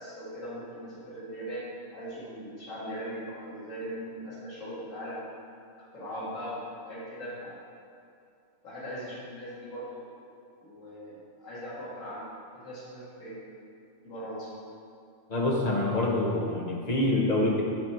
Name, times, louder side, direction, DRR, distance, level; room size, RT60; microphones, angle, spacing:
voice 1, 0.0-5.2 5.9-7.6 8.6-10.0 10.6-12.2 12.5-13.4 14.0-14.5, equal, 70° left, -9 dB, 2.4 m, -39 dB
voice 2, 15.3-17.6, left 2 dB, 30° left, -2 dB, 1.1 m, -26 dB
7.5 x 6.2 x 4.4 m, 2.6 s
omnidirectional pair, 1.4 m